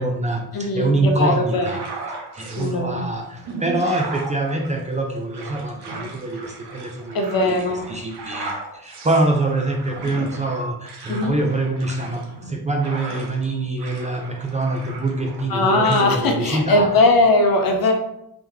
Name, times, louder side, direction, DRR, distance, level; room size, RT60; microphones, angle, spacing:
voice 1, 0.0-1.8 2.3-7.6 7.9-16.9, right 2 dB, 20° right, 2 dB, 0.5 m, -24 dB
voice 2, 0.5-1.8 2.6-3.1 7.1-7.9 11.1-11.4 15.5-17.9, left 2 dB, 60° left, 4 dB, 0.9 m, -20 dB
sound 1, 1.5-2.7 3.2-13.5 13.8-15.5 15.8-16.1, right 3 dB, 85° right, 1.0 m, -36 dB
3.6 x 3.0 x 3.4 m, 0.78 s
cardioid pair, 110°, 39 cm